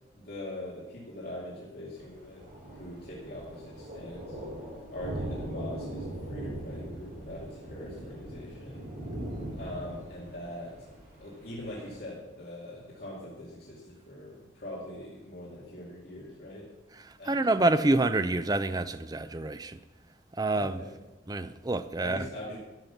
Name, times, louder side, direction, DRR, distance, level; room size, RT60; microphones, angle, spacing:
voice 1, 0.1-2.4 2.7-4.4 4.9-8.8 9.6-10.9 11.2-16.7 17.2-18.1 20.5-20.9 22.0-22.6, left 1 dB, 55° left, 2.6 m, -42 dB
Thunder, 2.0-12.0, right 1 dB, 45° right, 4.7 m, -40 dB
voice 2, 17.0-19.8 20.4-20.8 21.3-22.3, right 2 dB, 20° right, 0.5 m, -27 dB
13.5 x 7.6 x 7.2 m
head